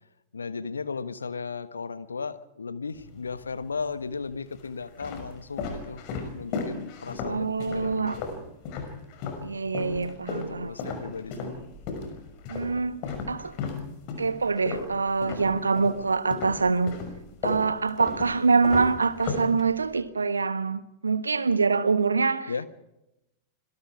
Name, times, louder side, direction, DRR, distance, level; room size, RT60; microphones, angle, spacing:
voice 1, 0.3-8.2 10.3-11.5 15.4-15.6 22.5-22.7, left 5 dB, 75° left, 1.3 m, -36 dB
sound 1, 2.9-3.7 4.3-9.5 9.7-16.0 16.3-20.0, left 4 dB, 45° left, 6.0 m, -35 dB
voice 2, 7.2-8.2 9.4-10.7 12.5-13.0 13.3-13.6 14.2-17.0 17.4-22.5, right 4 dB, 75° right, 1.2 m, -25 dB
26.5 x 22.0 x 4.8 m
figure-of-eight pair, 90°, 0 cm